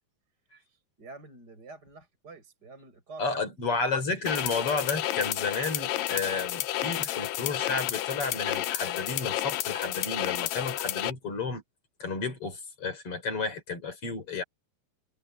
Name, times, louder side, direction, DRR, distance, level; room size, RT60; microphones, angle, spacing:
voice 1, 0.7-3.4, right 3 dB, 25° right, 7.6 m, -48 dB
voice 2, 3.2-11.6 12.0-14.4, left 4 dB, 35° left, 4.5 m, -32 dB
sound 1, 4.2-11.1, left 14 dB, 75° left, 2.4 m, -31 dB
omnidirectional pair, 4.5 m